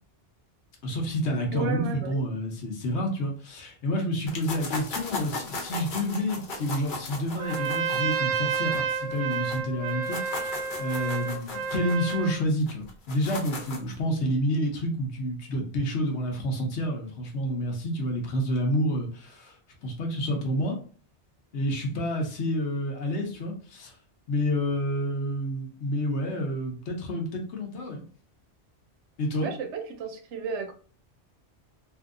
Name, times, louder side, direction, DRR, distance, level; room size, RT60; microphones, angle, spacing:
voice 1, 0.8-10.5 10.8-19.5 19.8-20.8 21.5-23.9 24.3-28.0 29.2-29.5, equal, 75° left, 2 dB, 1.1 m, -29 dB
voice 2, 1.5-2.2 29.4-30.7, right 5 dB, 80° right, 6 dB, 0.9 m, -33 dB
sound 1, 4.3-9.6 9.9-13.9, left 2 dB, 50° left, 0.8 m, -37 dB
Trumpet, 7.3-12.4, right 5 dB, 55° right, 0.5 m, -30 dB
3.0 x 2.7 x 2.4 m, 0.42 s
omnidirectional pair, 1.2 m